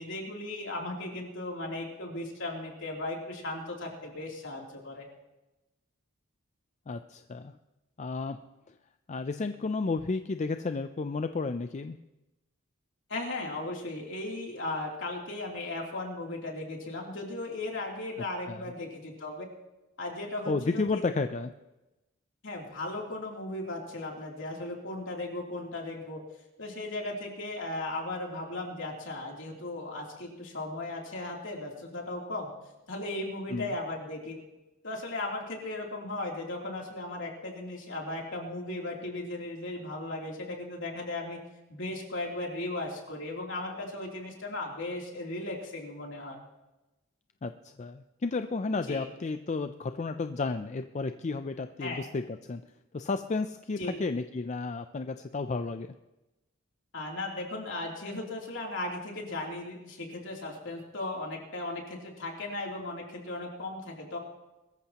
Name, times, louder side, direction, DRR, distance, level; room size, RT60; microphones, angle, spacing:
voice 1, 0.0-5.0 13.1-19.5 20.0-21.1 22.4-26.2 26.6-32.5 32.9-34.4 34.8-41.4 41.7-46.4 48.9-49.1 51.8-52.0 53.8-53.9 56.9-64.2, left 2 dB, 60° left, -1 dB, 3.2 m, -36 dB
voice 2, 6.9-7.6 8.0-8.4 9.1-12.0 18.5-18.6 20.5-21.5 33.5-33.7 47.4-52.6 52.9-55.9, left 3 dB, 35° left, 9 dB, 0.4 m, -32 dB
22.0 x 14.0 x 3.0 m, 1.0 s
head